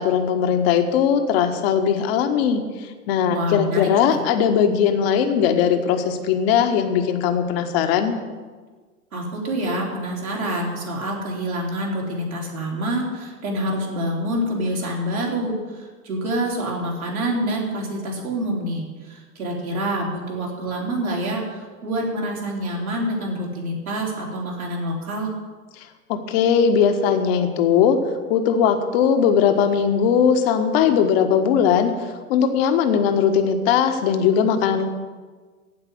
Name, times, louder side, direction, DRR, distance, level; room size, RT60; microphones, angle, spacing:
voice 1, 0.0-8.2 25.8-28.0 28.3-31.9 32.3-34.8, left 7 dB, 40° left, 7 dB, 1.5 m, -19 dB
voice 2, 3.3-3.9 9.1-25.3, right 1 dB, 70° right, -2 dB, 4.2 m, -27 dB
15.5 x 5.5 x 9.5 m, 1.4 s
figure-of-eight pair, 95°, 44 cm